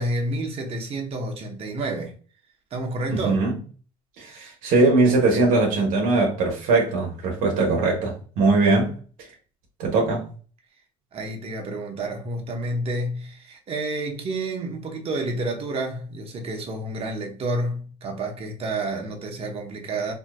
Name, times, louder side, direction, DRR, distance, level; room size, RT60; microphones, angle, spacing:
voice 1, 0.0-2.1 2.7-3.5 11.1-20.1, right 2 dB, 40° right, 0.9 m, -29 dB
voice 2, 3.1-3.5 4.2-8.9 9.8-10.2, right 3 dB, 70° right, 1.0 m, -21 dB
3.5 x 2.6 x 2.3 m
supercardioid pair, 95°, 15 cm